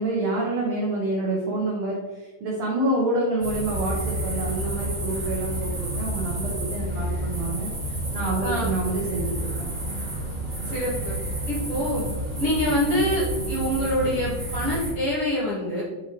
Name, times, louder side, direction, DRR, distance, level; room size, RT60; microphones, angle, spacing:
voice 1, 0.0-9.7, right 2 dB, 75° right, -2 dB, 1.5 m, -28 dB
sound 1, 3.4-14.9, right 1 dB, 20° right, 1.7 m, -30 dB
voice 2, 10.7-11.1 11.5-12.0 12.4-15.8, equal, 50° left, -7 dB, 1.9 m, -25 dB
8.5 x 5.6 x 3.0 m, 1.3 s
omnidirectional pair, 4.6 m